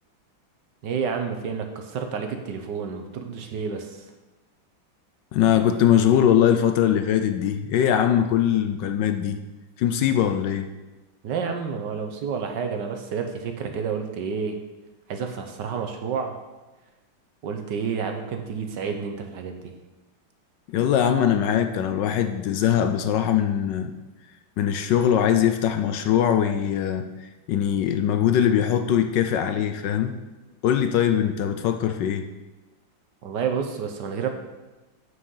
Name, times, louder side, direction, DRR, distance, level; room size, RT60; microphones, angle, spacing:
voice 1, 0.8-4.0 11.2-14.6 15.1-16.3 17.4-19.7 33.2-34.3, right 6 dB, 65° right, 5 dB, 1.4 m, -29 dB
voice 2, 5.3-9.4 9.8-10.7 20.7-23.9 24.6-30.1 30.6-32.2, left 9 dB, 70° left, 7 dB, 1.2 m, -21 dB
7.6 x 6.4 x 5.5 m, 1.1 s
omnidirectional pair, 2.2 m